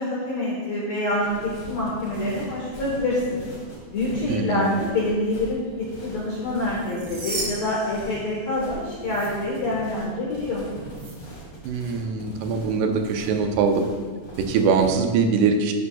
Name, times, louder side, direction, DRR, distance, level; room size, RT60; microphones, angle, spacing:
voice 1, 0.0-3.4 3.9-5.6 6.0-10.6, left 2 dB, 65° left, -5 dB, 1.7 m, -26 dB
sound 1, 1.2-14.9, right 1 dB, 35° left, 2.8 m, -40 dB
voice 2, 4.3-4.7 11.6-13.9 14.4-15.7, right 5 dB, 80° right, 5 dB, 2.8 m, -22 dB
sound 2, 6.7-8.7 9.0-9.3 10.9-11.1, right 2 dB, 50° right, 3.1 m, -35 dB
12.5 x 8.4 x 2.4 m, 1.5 s
omnidirectional pair, 4.8 m